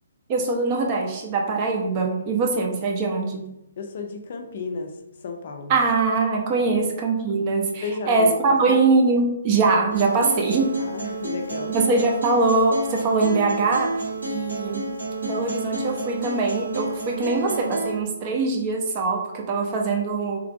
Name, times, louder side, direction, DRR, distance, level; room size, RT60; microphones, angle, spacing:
voice 1, 0.3-3.5 5.7-10.8 11.7-14.0 14.2-14.9 15.2-20.4, right 3 dB, 30° right, 2 dB, 0.5 m, -22 dB
voice 2, 3.8-5.0 5.2-5.8 6.7-6.9 7.8-8.8 10.8-11.8, left 4 dB, 50° left, 4 dB, 0.4 m, -33 dB
Acoustic guitar, 9.9-17.9, right 2 dB, 85° right, 1.1 m, -30 dB
2.9 x 2.4 x 2.5 m, 0.85 s
figure-of-eight pair, 135°, 0 cm